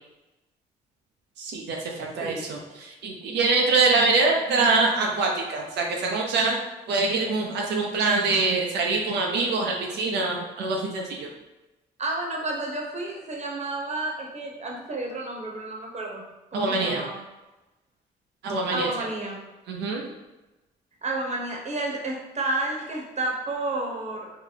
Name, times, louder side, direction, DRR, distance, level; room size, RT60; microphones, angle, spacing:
voice 1, 1.4-6.6 6.9-11.3 16.5-17.0 18.4-18.9 19.7-20.1, right 3 dB, 75° right, 0 dB, 0.5 m, -24 dB
voice 2, 12.0-16.2 16.5-17.2 18.7-19.4 21.0-24.3, right 2 dB, 40° right, -1 dB, 0.9 m, -31 dB
3.9 x 2.0 x 3.2 m, 1.1 s
supercardioid pair, 55°, 18 cm